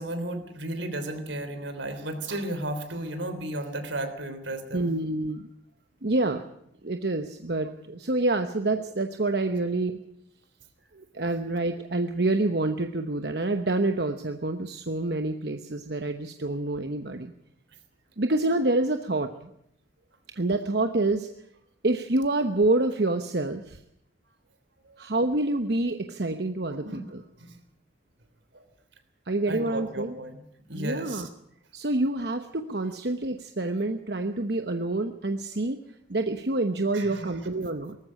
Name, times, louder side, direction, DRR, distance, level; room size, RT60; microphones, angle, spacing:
voice 1, 0.0-4.9 24.8-24.9 26.7-27.0 27.4-27.6 28.5-28.6 29.5-30.4 30.7-31.2 36.9-37.4, right 1 dB, 85° right, 8 dB, 3.4 m, -34 dB
voice 2, 4.7-5.5 6.0-6.5 6.8-10.0 10.9-17.3 18.2-19.5 20.3-21.3 21.8-23.8 25.0-27.2 29.3-30.2 30.7-31.3 31.7-35.8 36.1-38.0, right 2 dB, 60° right, 7 dB, 1.0 m, -27 dB
19.0 x 14.5 x 9.8 m, 0.76 s
head